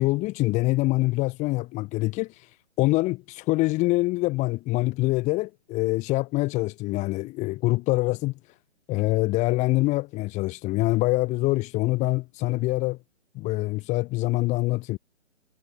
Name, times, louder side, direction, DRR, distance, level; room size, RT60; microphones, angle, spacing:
voice 1, 0.0-2.3 2.8-8.3 8.9-13.0 13.3-15.0, left 20 dB, 20° left, 2.8 m, -25 dB
figure-of-eight pair, 145°, 38 cm